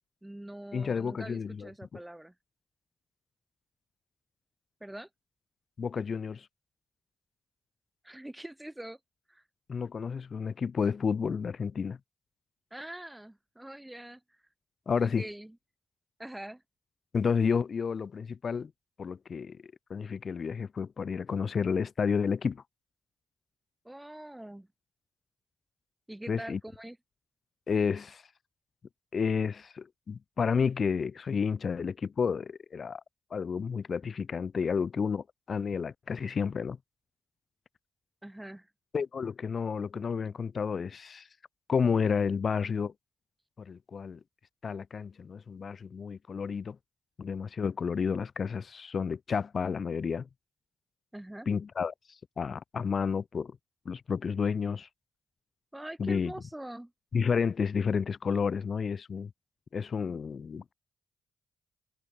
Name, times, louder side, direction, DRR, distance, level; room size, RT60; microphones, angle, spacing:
voice 1, 0.2-2.3 4.8-5.1 8.0-9.0 9.3-9.4 12.7-14.2 15.0-15.6 16.2-16.6 23.8-24.7 26.1-27.0 38.2-38.7 51.1-51.5 55.7-56.9, right 1 dB, 10° right, 3.7 m, -43 dB
voice 2, 0.7-1.7 5.8-6.5 9.7-12.0 14.9-15.3 17.1-18.7 19.0-19.6 19.9-22.6 26.3-26.6 27.7-28.2 29.1-33.0 33.3-36.8 38.9-41.3 41.7-42.9 43.6-44.2 44.6-46.8 47.2-50.3 51.5-53.6 53.8-54.9 56.0-56.3 57.1-59.3 59.7-60.7, left 6 dB, 55° left, 1.5 m, -31 dB
supercardioid pair, 55°, 0 cm